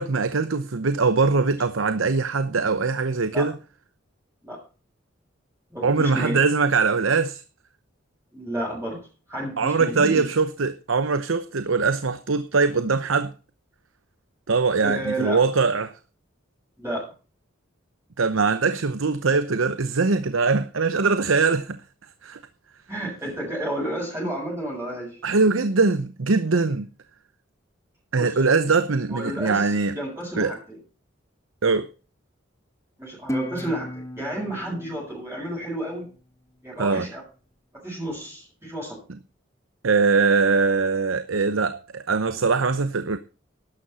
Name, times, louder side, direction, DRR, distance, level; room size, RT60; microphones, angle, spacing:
voice 1, 0.0-3.6 5.8-7.4 9.6-13.3 14.5-15.9 18.2-21.8 22.2-22.4 25.2-26.9 28.1-30.0 30.4-30.5 31.6-31.9 36.8-37.1 39.8-43.2, right 4 dB, 85° right, 0.8 m, -22 dB
voice 2, 5.7-6.4 8.3-9.0 9.3-10.2 14.8-15.4 16.8-17.1 22.9-25.2 28.1-28.3 29.1-30.8 33.0-36.1 36.6-37.2 37.7-39.0, right 1 dB, 10° right, 7.1 m, -31 dB
Guitar, 33.3-36.5, left 1 dB, 15° left, 1.5 m, -35 dB
12.0 x 11.5 x 4.2 m
head